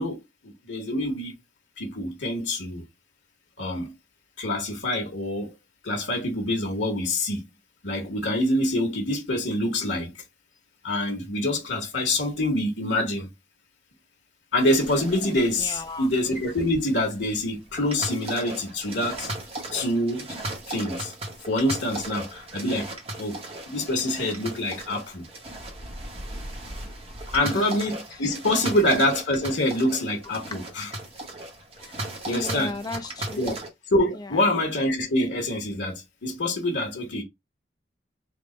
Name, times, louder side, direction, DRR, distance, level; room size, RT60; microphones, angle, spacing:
voice 1, 0.0-1.3 1.8-2.8 3.6-3.9 4.4-5.5 5.8-7.4 7.8-10.1 10.8-13.3 14.5-19.3 19.7-20.3 20.7-21.1 21.5-22.9 23.2-23.4 23.7-25.2 27.3-30.9 32.2-32.7 33.4-33.5 33.9-37.2, left 1 dB, 90° left, 1.2 m, -26 dB
sound 1, 14.6-33.7, right 2 dB, 30° right, 0.9 m, -37 dB
voice 2, 15.6-16.1 27.4-27.7 28.1-28.2 28.5-28.8 31.8-33.6 34.1-34.6, left 2 dB, 20° left, 0.4 m, -37 dB
3.5 x 2.1 x 3.8 m
head